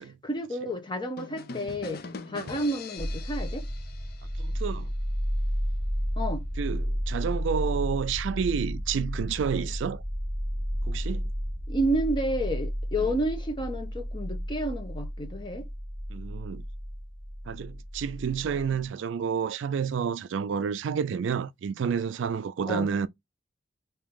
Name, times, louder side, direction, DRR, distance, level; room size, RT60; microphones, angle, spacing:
voice 1, 0.2-3.7 6.2-6.5 11.7-15.7 22.7-22.9, right 1 dB, 25° left, 1.0 m, -30 dB
sound 1, 1.2-4.9, left 4 dB, 55° left, 0.5 m, -43 dB
sound 2, 3.0-18.9, equal, ahead, 2.0 m, -32 dB
voice 2, 4.4-4.9 6.6-10.0 10.8-11.3 16.1-16.7 17.5-23.1, right 7 dB, 80° right, 0.4 m, -30 dB
3.6 x 2.8 x 3.5 m
head